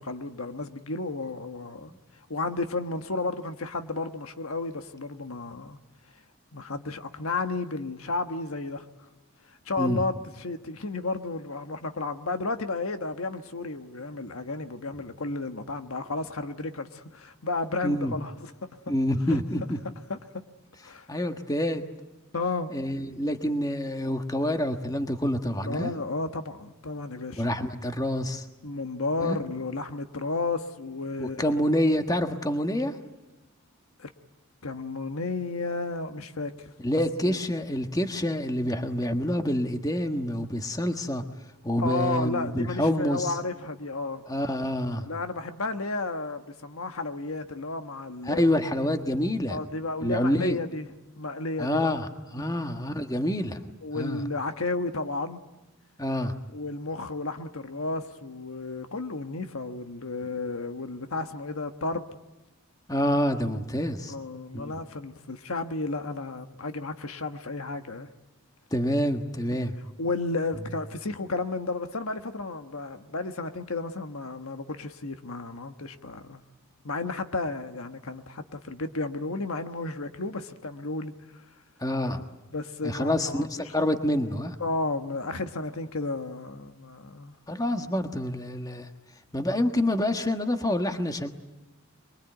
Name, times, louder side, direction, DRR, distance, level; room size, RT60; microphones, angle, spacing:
voice 1, 0.0-1.9 2.3-5.8 6.5-8.9 9.7-18.7 19.3-19.4 20.1-20.4 20.8-21.1 22.3-22.7 25.7-27.4 28.6-31.5 34.0-34.1 34.6-36.7 37.2-37.4 41.8-44.2 45.0-48.5 49.5-50.9 51.2-52.0 52.3-52.5 53.8-55.4 56.5-62.1 64.1-68.1 69.5-69.6 70.0-76.4 76.8-81.4 82.5-83.4 84.6-87.4, left 3 dB, 75° left, 8 dB, 1.3 m, -32 dB
voice 2, 17.8-18.1 18.9-19.8 21.1-21.9 22.7-25.9 27.4-28.4 29.2-29.4 31.2-33.0 36.8-41.2 41.6-43.4 44.3-45.1 48.2-49.6 50.0-50.6 51.6-53.6 53.9-54.2 56.0-56.4 62.9-64.1 64.5-64.8 68.7-69.7 81.8-82.2 82.8-84.6 87.5-88.9 89.3-91.3, left 1 dB, 15° left, 6 dB, 1.4 m, -27 dB
23.5 x 23.5 x 9.1 m, 1.0 s
head